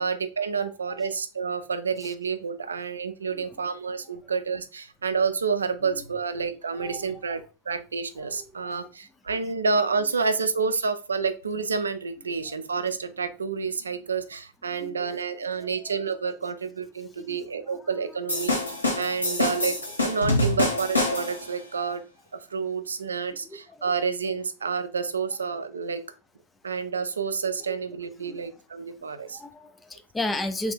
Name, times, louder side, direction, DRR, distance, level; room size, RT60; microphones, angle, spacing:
voice 1, 0.0-18.6 19.0-19.8 20.0-22.0 22.5-26.0 26.6-29.4, right 5 dB, 75° right, 10 dB, 0.4 m, -29 dB
voice 2, 0.6-1.0 2.0-2.1 2.6-2.7 3.3-3.6 4.2-4.3 5.9-6.0 6.7-7.1 8.2-8.9 12.5-12.6 14.8-15.1 15.6-15.9 17.2-17.4 17.7-18.1 21.7-22.0 23.5-23.9 27.7-27.8 28.2-28.4 29.1-30.7, left 2 dB, 10° left, 8 dB, 0.4 m, -36 dB
sound 1, 18.3-21.5, left 2 dB, 80° left, 1.0 m, -26 dB
3.0 x 2.4 x 3.5 m, 0.32 s
figure-of-eight pair, 90°, 0 cm